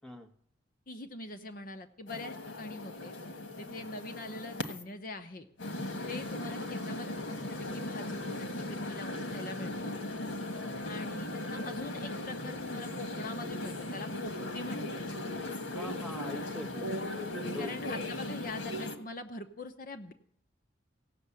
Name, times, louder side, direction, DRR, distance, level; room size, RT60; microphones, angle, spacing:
voice 1, 0.9-3.2 3.6-5.5 6.1-7.4 7.7-10.0 10.8-15.0 17.6-20.1, left 2 dB, 45° left, 8 dB, 0.8 m, -43 dB
sound 1, 2.1-4.8 5.6-19.0, left 1 dB, 85° left, 1.5 m, -38 dB
voice 2, 10.4-10.9 15.7-17.9, left 1 dB, 5° left, 4 dB, 1.2 m, -44 dB
16.5 x 6.6 x 8.3 m, 0.71 s
head